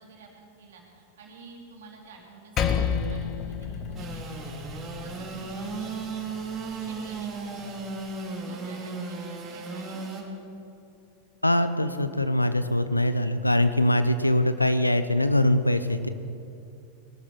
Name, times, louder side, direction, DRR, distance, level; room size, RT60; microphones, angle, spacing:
voice 1, 0.0-7.6 8.1-10.0, right 3 dB, 60° right, 0 dB, 3.3 m, -49 dB
Percussion, 2.6-7.3, left 7 dB, 30° left, 1.0 m, -32 dB
Engine / Sawing, 4.0-10.2, right 4 dB, 25° right, 2.7 m, -35 dB
voice 2, 11.4-16.1, left 1 dB, 85° left, 11 dB, 0.7 m, -23 dB
20.0 x 12.5 x 4.6 m, 2.7 s
figure-of-eight pair, 90°, 0 cm